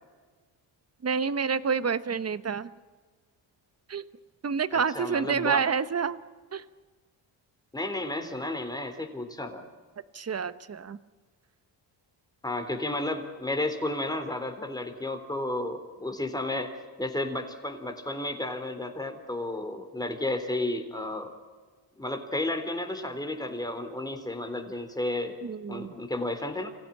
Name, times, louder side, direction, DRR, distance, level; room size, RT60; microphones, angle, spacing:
voice 1, 1.0-2.7 3.9-4.0 4.4-6.2 6.5-6.6 10.1-11.0 25.5-25.9, right 6 dB, 35° right, 14 dB, 1.2 m, -28 dB
voice 2, 4.7-5.7 7.7-9.6 12.4-16.7 17.0-21.3 22.0-25.4 25.7-26.7, left 1 dB, 10° left, 5 dB, 3.6 m, -32 dB
25.5 x 16.5 x 10.0 m, 1.4 s
cardioid pair, 85°, 45 cm